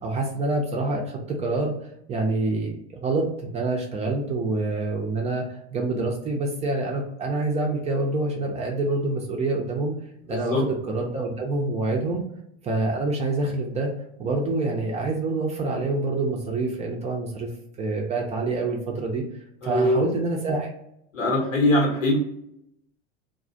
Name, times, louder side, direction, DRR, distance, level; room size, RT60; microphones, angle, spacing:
voice 1, 0.0-1.7 2.1-9.9 10.3-12.2 12.6-13.9 14.2-17.5 17.8-19.2 19.6-20.7, right 2 dB, 20° right, 0 dB, 0.3 m, -26 dB
voice 2, 10.3-10.6 19.6-20.0 21.1-22.2, left 1 dB, 85° left, 0 dB, 1.0 m, -22 dB
2.3 x 2.0 x 2.6 m, 0.76 s
hypercardioid pair, 85°, 38 cm